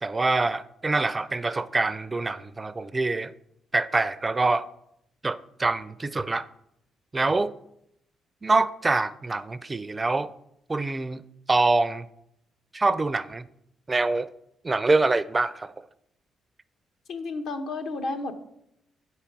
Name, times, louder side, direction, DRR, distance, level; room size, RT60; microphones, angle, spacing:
voice 1, 0.0-3.3 3.7-4.6 5.2-6.5 7.1-7.5 8.4-10.3 10.7-11.2 11.5-12.1 12.7-13.4 13.9-14.3 14.6-15.8, right 3 dB, 25° right, 0.4 m, -25 dB
voice 2, 17.1-18.3, left 3 dB, 70° left, 1.1 m, -31 dB
8.1 x 5.0 x 5.9 m
cardioid pair, 90°, 0 cm